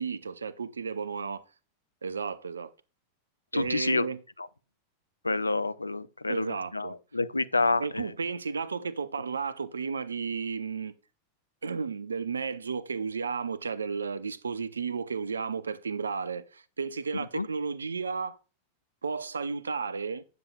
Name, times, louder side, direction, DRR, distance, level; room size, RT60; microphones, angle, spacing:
voice 1, 0.0-1.4 2.0-2.7 3.5-4.2 6.3-6.9 7.8-10.9 11.6-18.4 19.0-20.2, right 5 dB, 75° right, 0.5 m, -33 dB
voice 2, 3.5-4.1 4.4-4.5 5.2-8.1 17.1-17.5, left 3 dB, 80° left, 0.4 m, -29 dB
9.3 x 7.0 x 2.3 m
figure-of-eight pair, 90°, 0 cm